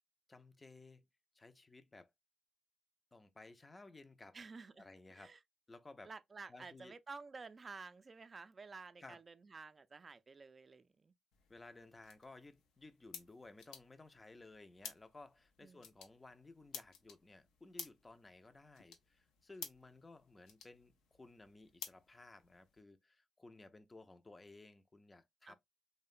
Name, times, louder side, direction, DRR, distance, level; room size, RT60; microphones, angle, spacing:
voice 1, 0.3-1.1 1.3-2.1 3.1-4.4 4.8-5.4 5.7-6.1 6.5-6.9 9.0-9.2 11.5-25.5, left 2 dB, 25° left, 0.4 m, -57 dB
voice 2, 4.3-4.9 5.1-5.4 6.0-11.1 15.6-15.8 25.5-25.6, right 4 dB, 40° right, 0.3 m, -52 dB
sound 1, 11.3-22.8, left 7 dB, 85° left, 0.5 m, -55 dB
2.8 x 2.1 x 2.4 m
supercardioid pair, 55°, 0 cm